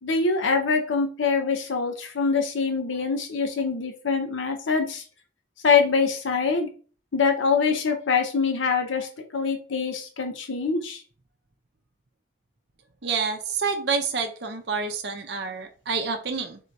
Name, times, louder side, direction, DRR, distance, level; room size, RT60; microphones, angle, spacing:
voice 1, 0.0-5.0 5.6-6.7 7.1-11.0, left 5 dB, 85° left, 4 dB, 0.7 m, -24 dB
voice 2, 13.0-16.6, right 5 dB, 60° right, 4 dB, 0.6 m, -28 dB
3.7 x 2.7 x 4.4 m, 0.39 s
head